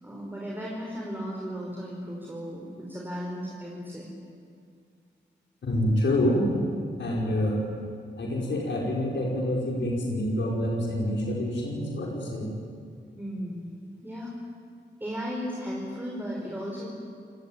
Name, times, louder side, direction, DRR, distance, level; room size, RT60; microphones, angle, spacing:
voice 1, 0.0-4.1 13.1-13.7 14.0-14.3 15.0-16.9, equal, 10° right, -3 dB, 5.2 m, -35 dB
voice 2, 5.6-6.5 7.0-7.6 8.2-12.5, left 1 dB, 80° left, -2 dB, 5.4 m, -27 dB
28.0 x 18.5 x 8.9 m, 2.3 s
cardioid pair, 75°, 18 cm